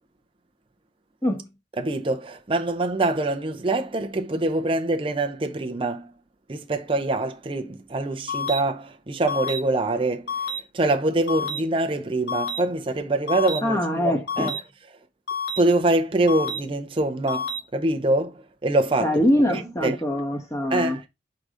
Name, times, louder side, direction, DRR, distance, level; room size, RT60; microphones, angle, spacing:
voice 1, 1.8-6.1 6.5-14.5 15.6-19.1 19.5-20.0 20.7-21.1, right 2 dB, 30° right, 0.6 m, -24 dB
sound 1, 8.3-8.6 9.3-9.6 10.3-10.6 11.3-11.6 12.3-12.6 13.3-13.6 14.3-14.6 15.3-15.6 16.3-16.6 17.3-17.6, left 3 dB, 70° left, 1.4 m, -28 dB
voice 2, 13.6-14.5 19.0-21.0, left 1 dB, 15° left, 1.2 m, -23 dB
4.8 x 3.9 x 5.0 m
head